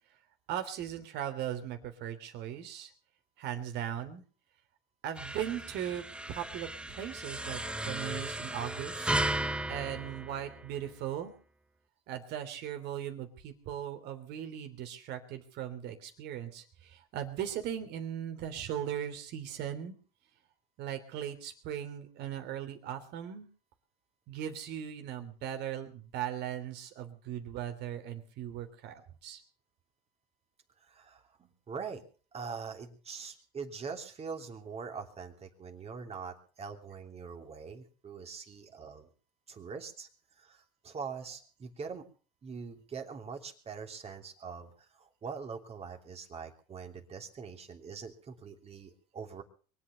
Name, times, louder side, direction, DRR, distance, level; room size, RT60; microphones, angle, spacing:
voice 1, 0.5-2.9 3.4-4.2 5.0-11.3 12.1-20.0 20.8-23.5 24.3-29.4, right 10 dB, 60° right, 8 dB, 3.3 m, -38 dB
sound 1, 5.2-11.0, right 1 dB, 5° right, 0.8 m, -36 dB
voice 2, 30.8-32.0 32.3-39.1 39.5-40.1 40.4-42.1 42.4-49.4, right 5 dB, 30° right, 5 dB, 3.1 m, -43 dB
23.0 x 8.6 x 6.8 m, 0.41 s
supercardioid pair, 100°, 20 cm